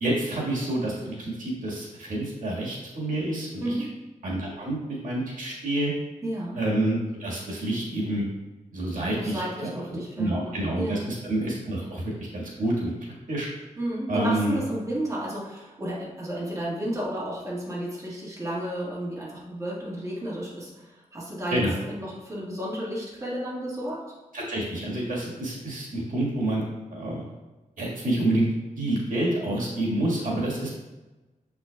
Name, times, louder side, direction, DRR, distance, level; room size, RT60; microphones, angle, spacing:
voice 1, 0.0-3.7 4.2-5.9 6.5-8.2 8.7-12.9 13.3-13.5 14.1-14.6 21.5-21.7 24.3-26.6 26.9-27.2 27.8-28.5 28.8-30.7, right 1 dB, 80° right, -4 dB, 1.7 m, -28 dB
voice 2, 3.6-3.9 6.2-6.6 9.2-11.0 13.8-24.0, right 1 dB, 25° right, -7 dB, 1.6 m, -32 dB
7.0 x 5.9 x 2.3 m, 1.1 s
wide cardioid pair, 150°, 13 cm